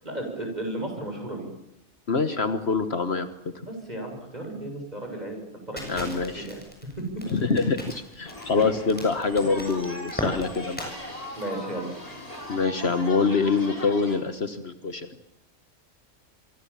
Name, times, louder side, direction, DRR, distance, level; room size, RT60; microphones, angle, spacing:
voice 1, 0.0-1.5 3.6-5.4 5.7-6.1 6.3-6.6 8.6-8.7 11.4-11.9, right 1 dB, 30° right, 3 dB, 7.6 m, -34 dB
voice 2, 2.1-3.3 5.9-6.5 7.3-11.0 12.5-15.1, left 4 dB, 55° left, 10 dB, 1.5 m, -25 dB
Crackle, 5.8-10.9, equal, 5° left, 7.2 m, -37 dB
sound 1, 8.2-14.2, left 1 dB, 30° left, 5.3 m, -39 dB
27.0 x 23.5 x 7.4 m, 0.83 s
omnidirectional pair, 1.3 m